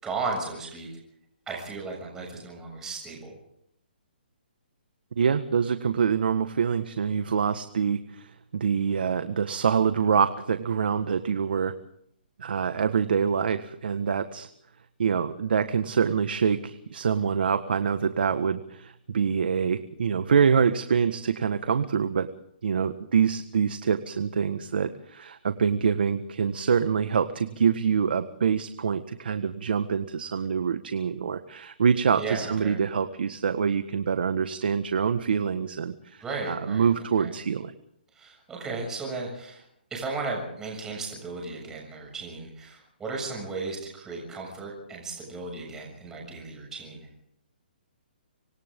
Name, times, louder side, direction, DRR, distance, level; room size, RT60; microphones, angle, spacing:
voice 1, 0.0-0.9 1.5-3.4 32.1-32.8 36.2-36.9 37.2-37.3 38.1-39.7 39.9-47.1, right 3 dB, 10° right, -1 dB, 7.0 m, -35 dB
voice 2, 5.2-11.7 12.4-14.5 15.0-22.3 22.6-37.7, right 6 dB, 65° right, 10 dB, 1.6 m, -25 dB
27.0 x 25.5 x 3.8 m, 0.73 s
hypercardioid pair, 165°, 5 cm